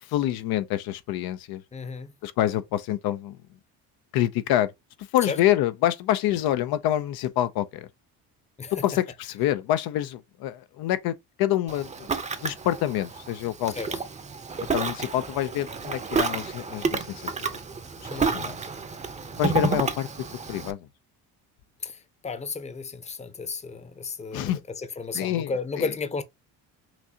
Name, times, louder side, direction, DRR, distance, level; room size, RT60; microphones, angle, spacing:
voice 1, 0.0-1.6 2.2-3.4 4.1-4.7 5.0-7.9 8.8-12.1 12.4-14.0 14.7-17.5 18.0-18.6 19.4-20.1 20.5-20.9 24.3-24.6 25.1-25.9, left 13 dB, 70° left, 0.6 m, -27 dB
voice 2, 1.7-2.1 5.3-5.4 8.6-8.7 13.8-13.9 18.1-18.6 21.8-26.2, left 4 dB, 20° left, 0.7 m, -33 dB
Ocean, 11.7-20.7, right 5 dB, 20° right, 0.7 m, -30 dB
6.0 x 2.6 x 2.7 m
cardioid pair, 105°, 37 cm